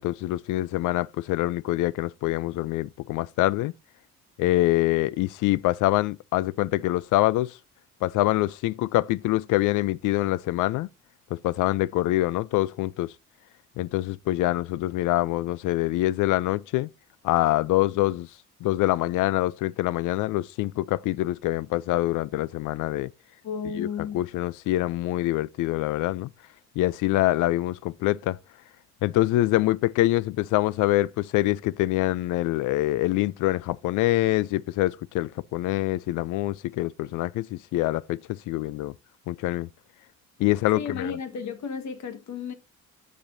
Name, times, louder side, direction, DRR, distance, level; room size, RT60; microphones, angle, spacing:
voice 1, 0.0-3.7 4.4-7.6 8.0-10.9 11.3-13.1 13.8-16.9 17.2-18.3 18.6-23.1 23.8-23.9 24.1-26.3 26.8-28.4 29.0-38.2 38.5-38.9 39.3-39.7 40.4-41.2, left 17 dB, 85° left, 0.4 m, -25 dB
voice 2, 23.4-24.2 40.7-42.5, left 6 dB, 70° left, 1.5 m, -33 dB
13.5 x 5.1 x 2.6 m
cardioid pair, 90°, 30 cm